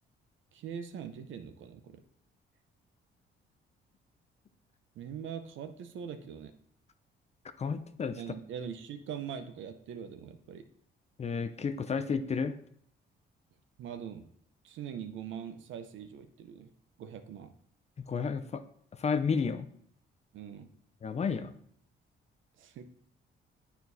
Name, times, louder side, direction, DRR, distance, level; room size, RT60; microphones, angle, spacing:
voice 1, 0.5-2.0 4.9-6.5 8.2-10.7 13.8-14.3 14.6-16.7 17.0-17.5 20.3-20.7 22.6-22.8, right 8 dB, 75° right, 9 dB, 0.7 m, -42 dB
voice 2, 7.6-8.2 11.2-12.5 18.1-18.6 19.0-19.7 21.0-21.5, left 5 dB, 35° left, 9 dB, 0.5 m, -31 dB
9.1 x 4.5 x 2.7 m, 0.65 s
cardioid pair, 90°, 20 cm